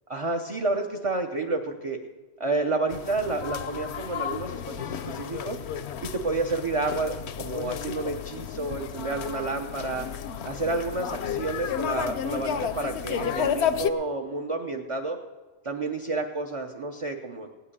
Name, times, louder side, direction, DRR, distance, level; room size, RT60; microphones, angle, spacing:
voice 1, 0.1-2.0 2.4-5.6 6.0-10.1 10.4-15.2 15.6-17.5, right 3 dB, 35° right, 2 dB, 0.7 m, -30 dB
sound 1, 2.9-13.9, left 9 dB, 70° left, 0.9 m, -32 dB
16.5 x 5.8 x 9.7 m, 1.3 s
omnidirectional pair, 1.2 m